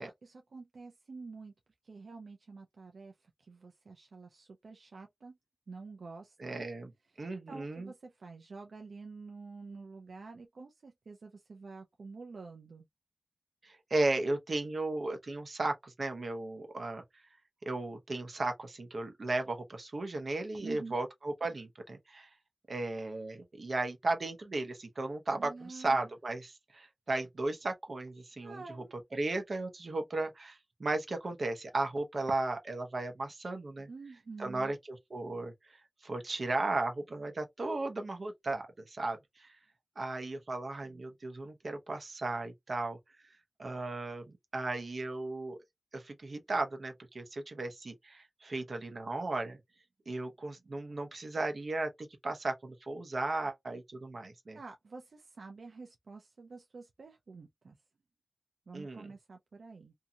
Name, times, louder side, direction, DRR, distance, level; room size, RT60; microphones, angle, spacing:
voice 1, 0.0-1.5 1.8-5.4 5.7-6.7 7.1-12.9 20.6-21.0 25.4-26.1 28.4-28.9 33.9-34.7 54.5-57.8 58.7-59.9, right 4 dB, 85° right, 0.4 m, -48 dB
voice 2, 6.4-6.9 7.2-7.9 13.6-17.0 17.7-22.3 22.7-28.8 29.1-33.9 34.4-35.8 36.0-39.6 40.0-43.0 43.6-45.6 45.9-49.6 50.1-54.6 58.7-59.1, right 2 dB, 60° right, 0.8 m, -35 dB
2.7 x 2.6 x 2.3 m
wide cardioid pair, 95°, 0 cm